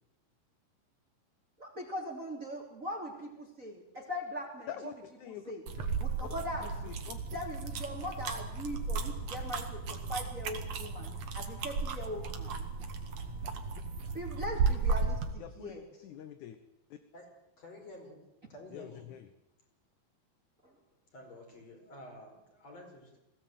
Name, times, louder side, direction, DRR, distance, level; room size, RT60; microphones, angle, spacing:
voice 1, 1.6-4.9 5.2-5.6 6.0-7.0 7.3-12.7 14.1-15.8 20.6-20.7, equal, 20° right, 2 dB, 3.0 m, -41 dB
voice 2, 4.7-5.5 6.6-7.2 13.7-13.8 15.4-16.6 16.9-17.0 18.7-19.3, left 10 dB, 65° left, 10 dB, 2.2 m, -46 dB
sound 1, 5.7-15.3, right 4 dB, 50° right, 2.8 m, -35 dB
voice 3, 17.6-18.2 18.5-19.1 21.1-23.2, left 1 dB, 45° left, 2 dB, 6.0 m, -50 dB
22.0 x 17.0 x 9.3 m, 0.89 s
omnidirectional pair, 4.3 m